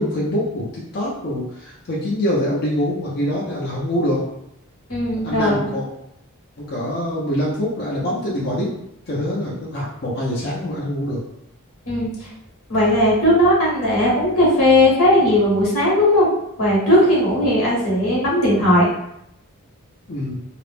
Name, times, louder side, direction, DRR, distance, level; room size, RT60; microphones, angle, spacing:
voice 1, 0.0-4.2 5.2-5.9 6.6-8.7 9.1-11.2 20.1-20.4, equal, 45° left, -5 dB, 0.5 m, -24 dB
voice 2, 4.9-5.6 11.9-12.1 12.7-16.3 16.6-18.9, left 1 dB, 85° left, -6 dB, 0.9 m, -17 dB
2.3 x 2.0 x 3.2 m, 0.78 s
head